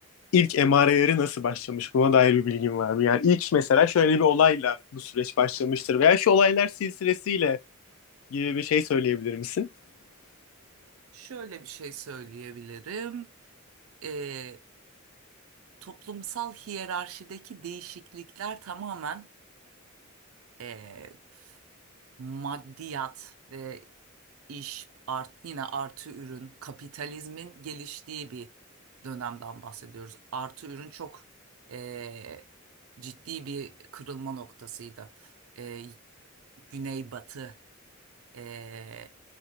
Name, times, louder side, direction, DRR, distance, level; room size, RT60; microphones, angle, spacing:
voice 1, 0.3-7.6 8.3-9.7, left 7 dB, 75° left, 0.3 m, -22 dB
voice 2, 11.1-13.3 14.0-14.6 15.8-19.3 20.6-21.5 22.2-23.9 24.5-28.5 29.0-31.2 31.7-32.4 33.0-35.9 36.7-37.6 38.3-39.1, right 6 dB, 85° right, 0.5 m, -39 dB
2.8 x 2.5 x 2.9 m
head